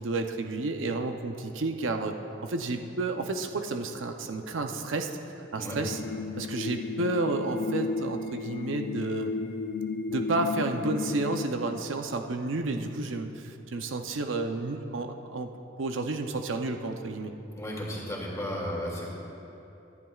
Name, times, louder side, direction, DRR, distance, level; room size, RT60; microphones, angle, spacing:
voice 1, 0.0-5.1 5.4-6.0 6.4-9.3 10.1-15.5 15.8-17.3, right 2 dB, 85° right, 5 dB, 0.7 m, -31 dB
sound 1, 5.7-11.4, left 4 dB, 60° left, 0.6 m, -33 dB
voice 2, 17.5-19.1, equal, 15° left, -3 dB, 2.4 m, -34 dB
24.5 x 11.0 x 2.4 m, 2.9 s
head